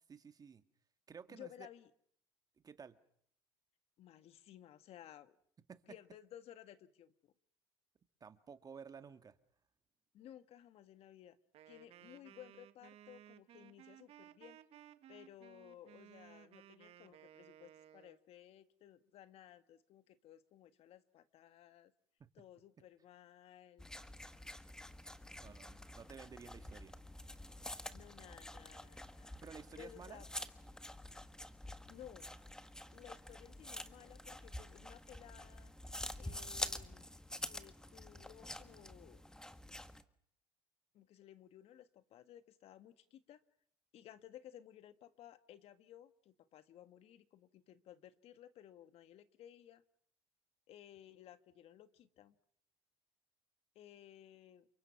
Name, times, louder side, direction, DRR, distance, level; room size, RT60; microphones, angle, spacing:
voice 1, 0.1-0.6 1.1-1.7 2.6-3.0 5.7-6.0 8.2-9.3 22.2-22.3 25.3-26.9 29.4-30.2, right 6 dB, 35° right, 9 dB, 2.0 m, -53 dB
voice 2, 1.3-1.9 4.0-5.3 5.9-7.3 10.1-11.4 11.7-14.6 15.1-21.9 22.3-23.9 27.9-29.3 29.8-30.3 31.9-32.3 32.9-35.7 36.2-37.1 37.4-39.2 40.9-43.4 43.9-49.8 50.7-52.3 53.7-54.7, left 11 dB, 60° left, 11 dB, 1.6 m, -57 dB
Wind instrument woodwind instrument, 11.5-18.2, right 12 dB, 60° right, 1.6 m, -59 dB
sound 1, 23.8-40.0, left 1 dB, 5° left, 1.5 m, -48 dB
29.5 x 23.5 x 6.0 m, 0.67 s
supercardioid pair, 90°, 11 cm